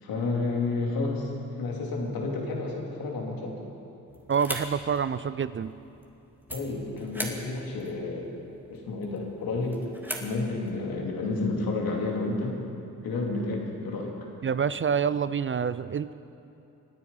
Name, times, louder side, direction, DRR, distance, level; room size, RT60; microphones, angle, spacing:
voice 1, 0.0-1.3 1.6-3.5 6.5-8.3 8.7-9.8 10.2-12.6 13.0-14.1, left 3 dB, 75° left, -1 dB, 3.1 m, -30 dB
sound 1, 4.1-10.8, equal, 5° right, 2.8 m, -41 dB
voice 2, 4.3-5.7 14.4-16.1, right 7 dB, 35° right, 15 dB, 0.5 m, -27 dB
25.5 x 9.3 x 5.6 m, 2.8 s
supercardioid pair, 55°, 36 cm